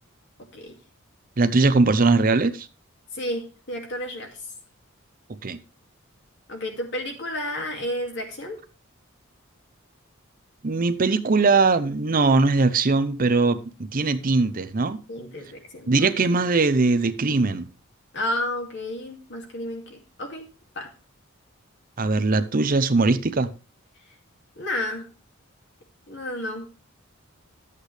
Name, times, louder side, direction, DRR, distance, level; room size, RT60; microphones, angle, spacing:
voice 1, 0.4-0.8 3.1-4.4 6.5-8.6 15.1-16.1 18.1-20.5 20.7-20.9 24.6-25.1 26.1-26.9, left 1 dB, 60° left, 2.4 m, -31 dB
voice 2, 1.4-2.7 5.4-5.6 10.6-13.6 13.9-15.0 15.9-17.7 22.0-23.5, right 3 dB, 40° right, 0.6 m, -20 dB
12.0 x 8.3 x 3.3 m
head